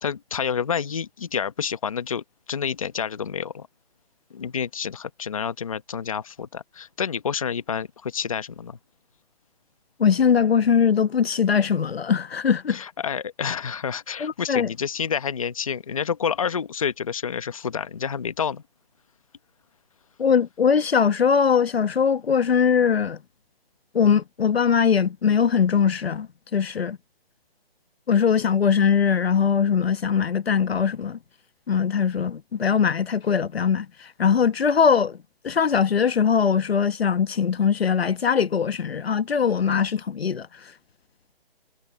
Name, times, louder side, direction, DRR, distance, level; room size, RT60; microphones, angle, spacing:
voice 1, 0.0-3.7 4.3-8.8 12.7-18.6, left 7 dB, 35° left, 1.0 m, -29 dB
voice 2, 10.0-12.8 14.2-14.7 20.2-23.2 23.9-27.0 28.1-31.2 31.7-35.2 35.4-40.5, left 7 dB, 75° left, 1.2 m, -21 dB
hypercardioid pair, 175°, 31 cm